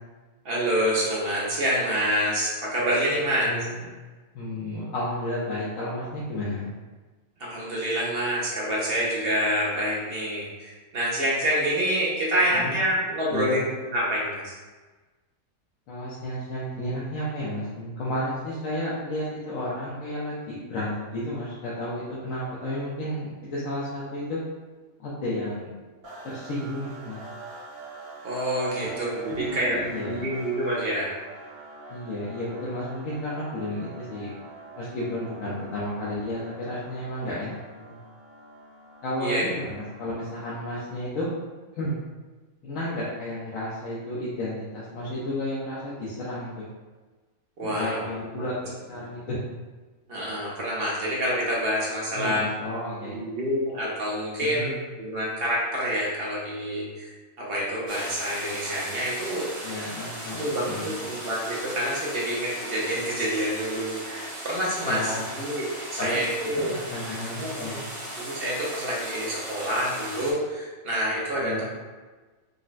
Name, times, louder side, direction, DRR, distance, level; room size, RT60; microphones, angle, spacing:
voice 1, 0.4-3.5 7.4-14.5 28.2-31.1 35.4-35.5 39.2-39.5 47.6-48.0 48.3-48.4 49.0-49.1 50.1-52.5 53.0-59.7 60.0-66.7 67.4-67.8 68.2-71.6, equal, 55° right, -4 dB, 0.7 m, -27 dB
voice 2, 3.4-3.8 4.3-6.7 12.5-12.8 13.3-13.6 15.9-24.4 25.0-25.7 26.2-27.2 28.8-28.9 29.3-30.2 31.9-34.3 34.8-38.0 39.0-41.3 41.7-42.0 42.6-46.7 47.6-49.4 52.1-53.2 54.4-54.7 59.6-61.1 64.8-65.2 66.0-66.2 66.5-67.8 71.4-71.6, left 1 dB, 75° left, -7 dB, 1.0 m, -32 dB
sound 1, 26.0-40.2, right 3 dB, 80° right, 1.4 m, -44 dB
sound 2, 57.9-70.3, right 1 dB, 25° right, 0.4 m, -37 dB
3.8 x 2.1 x 2.4 m, 1.3 s
omnidirectional pair, 1.5 m